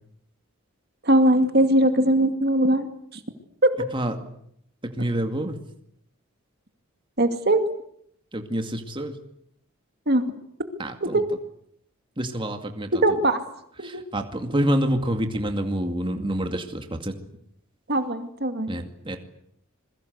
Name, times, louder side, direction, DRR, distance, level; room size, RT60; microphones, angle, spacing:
voice 1, 1.0-2.9 3.6-3.7 7.2-7.6 10.1-10.2 11.0-11.2 13.0-13.4 13.8-14.0 17.9-18.7, right 1 dB, 50° right, 7 dB, 2.3 m, -20 dB
voice 2, 4.8-5.6 8.3-9.2 10.8-11.2 12.2-12.9 13.8-17.1 18.7-19.2, right 1 dB, 25° right, 5 dB, 2.3 m, -27 dB
27.5 x 22.5 x 8.1 m, 0.71 s
head